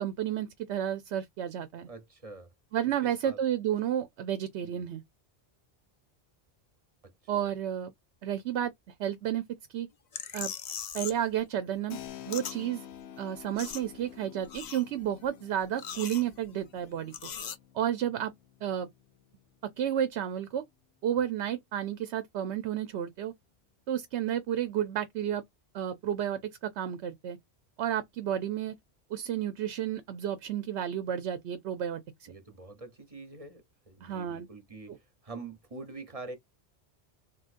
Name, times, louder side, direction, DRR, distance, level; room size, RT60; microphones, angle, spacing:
voice 1, 0.0-1.9 2.7-5.0 7.3-7.9 8.2-8.7 9.0-9.4 9.7-9.9 10.3-10.5 10.9-12.0 12.3-12.9 13.2-17.1 17.7-18.3 18.6-18.9 19.8-20.6 21.0-23.3 23.9-25.4 25.7-27.4 27.8-28.7 29.1-32.0 34.0-34.5 34.9-35.0, right 10 dB, 85° right, 0.9 m, -31 dB
voice 2, 1.9-2.5 3.0-3.4 4.6-4.9 7.0-7.5 32.3-34.9 35.2-36.4, right 3 dB, 35° right, 0.9 m, -45 dB
sound 1, 10.1-11.3 11.6-12.6 12.9-13.0 13.3-14.2 14.4-15.2 15.6-16.7 17.1-17.6, left 7 dB, 50° left, 0.6 m, -40 dB
Keyboard (musical), 11.9-20.3, left 10 dB, 80° left, 0.9 m, -50 dB
3.7 x 2.7 x 2.4 m
omnidirectional pair, 1.1 m